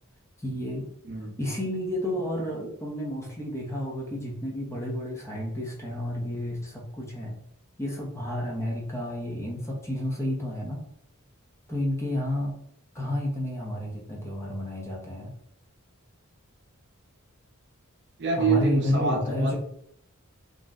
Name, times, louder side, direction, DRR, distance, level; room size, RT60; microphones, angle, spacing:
voice 1, 0.4-0.9 1.4-7.4 7.8-10.8 11.7-12.5 12.9-15.3 18.4-19.6, left 1 dB, 15° left, -2 dB, 0.6 m, -30 dB
voice 2, 18.2-19.6, right 4 dB, 50° right, 1 dB, 0.7 m, -26 dB
2.6 x 2.1 x 3.4 m, 0.71 s
head